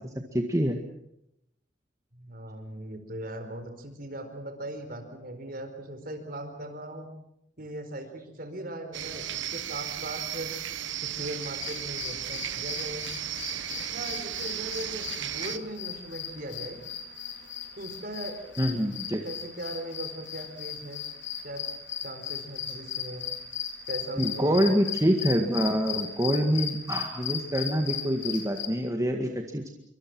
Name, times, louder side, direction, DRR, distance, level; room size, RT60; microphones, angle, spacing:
voice 1, 0.3-0.8 18.6-19.2 24.2-29.7, equal, 15° right, 3 dB, 1.9 m, -26 dB
voice 2, 2.1-7.1 7.6-10.5 11.0-13.1 13.8-16.8 17.8-18.4 19.2-21.0 21.4-21.6 22.0-23.3 23.9-24.8, right 1 dB, 50° right, 7 dB, 4.5 m, -39 dB
sound 1, 8.9-15.6, right 11 dB, 90° right, 1.3 m, -35 dB
sound 2, 11.4-28.7, left 8 dB, 75° left, 4.2 m, -37 dB
26.5 x 24.5 x 6.2 m, 0.77 s
head